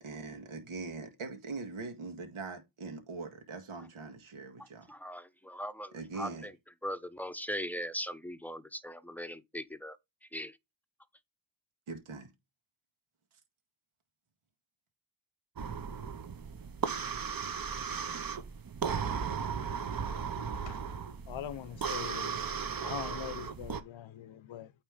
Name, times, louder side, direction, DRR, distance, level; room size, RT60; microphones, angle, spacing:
voice 1, 0.0-4.9 5.9-6.5 11.9-12.3, right 3 dB, 85° right, 1.8 m, -42 dB
voice 2, 4.9-6.5 6.8-10.0 10.2-10.6, equal, 5° left, 0.7 m, -39 dB
sound 1, 15.6-23.8, right 6 dB, 45° right, 1.0 m, -36 dB
voice 3, 21.3-22.5 22.8-24.7, left 11 dB, 70° left, 0.7 m, -42 dB
8.8 x 3.3 x 5.0 m
cardioid pair, 75°, 49 cm